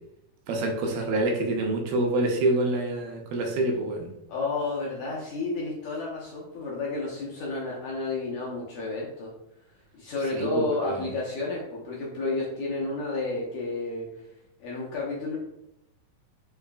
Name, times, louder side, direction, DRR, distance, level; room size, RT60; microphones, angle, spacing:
voice 1, 0.5-4.1 10.3-11.1, right 2 dB, 85° right, 2 dB, 2.5 m, -26 dB
voice 2, 4.3-9.3 9.9-14.3 14.6-15.4, left 3 dB, 75° left, -5 dB, 1.7 m, -31 dB
5.8 x 2.4 x 2.3 m, 0.83 s
omnidirectional pair, 4.0 m